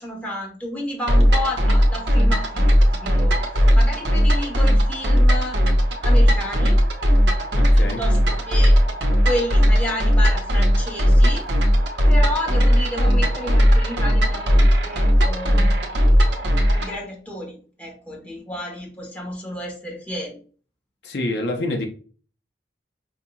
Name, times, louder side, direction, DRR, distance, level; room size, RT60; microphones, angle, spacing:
voice 1, 0.0-5.6 6.0-6.8 7.7-8.8 9.2-11.5 12.1-16.1 16.7-20.4, left 1 dB, 10° left, 1.2 m, -31 dB
sound 1, 1.1-17.0, equal, 70° right, 0.8 m, -17 dB
voice 2, 7.5-8.0 21.0-21.9, left 2 dB, 65° left, 0.6 m, -26 dB
5.3 x 2.8 x 2.3 m
head